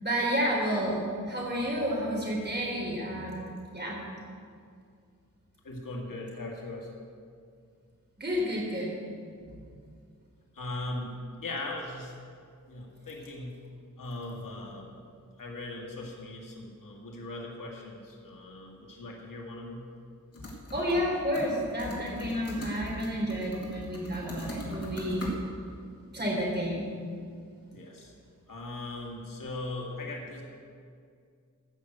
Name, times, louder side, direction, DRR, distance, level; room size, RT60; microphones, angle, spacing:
voice 1, 0.0-4.0 8.2-8.9 20.7-25.3 26.1-26.9, equal, 30° right, -3 dB, 3.7 m, -30 dB
voice 2, 5.6-6.9 10.5-12.2 12.7-13.6 14.0-15.0 15.4-19.9 27.7-28.1 28.5-30.4, left 2 dB, 75° left, -1 dB, 2.2 m, -39 dB
sound 1, 20.3-21.1 21.3-25.4, equal, 45° left, 2.5 m, -40 dB
14.0 x 6.2 x 7.9 m, 2.2 s
wide cardioid pair, 125°, 33 cm